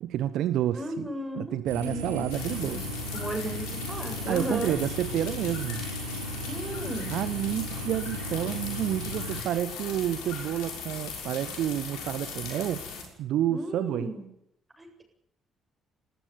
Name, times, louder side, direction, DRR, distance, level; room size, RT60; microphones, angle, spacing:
voice 1, 0.0-1.1 1.4-2.8 4.2-5.8 7.1-12.8 13.2-14.1, right 11 dB, 55° right, 14 dB, 0.9 m, -29 dB
voice 2, 0.7-1.6 1.8-2.2 2.6-4.8 6.4-7.1 13.5-14.3 14.8-15.0, right 1 dB, 15° right, 3 dB, 8.0 m, -35 dB
sound 1, 1.7-9.4, equal, 80° right, 3.2 m, -36 dB
sound 2, 2.3-13.0, left 5 dB, 65° left, 6.2 m, -39 dB
19.5 x 19.5 x 9.5 m, 0.76 s
figure-of-eight pair, 45°, 0 cm